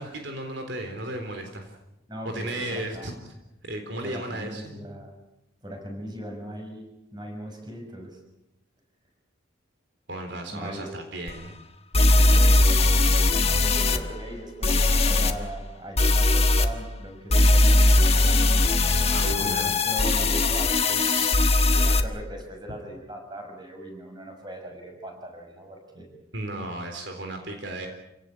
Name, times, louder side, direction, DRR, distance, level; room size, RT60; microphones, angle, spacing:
voice 1, 0.0-1.7 2.2-3.1 3.6-4.9 10.1-11.6 19.1-19.8 20.9-21.9 26.3-27.9, right 1 dB, 60° right, 5 dB, 3.7 m, -35 dB
voice 2, 2.1-3.1 4.0-5.1 5.6-6.9 7.1-8.2 10.5-10.9 12.1-18.7 19.4-21.4 21.7-26.1, right 1 dB, 20° right, 3 dB, 6.3 m, -39 dB
sound 1, 11.3-11.4 11.9-14.0 14.6-15.3 16.0-16.7 17.3-22.0, left 2 dB, 30° left, 1.5 m, -19 dB
28.5 x 17.5 x 8.4 m, 0.89 s
head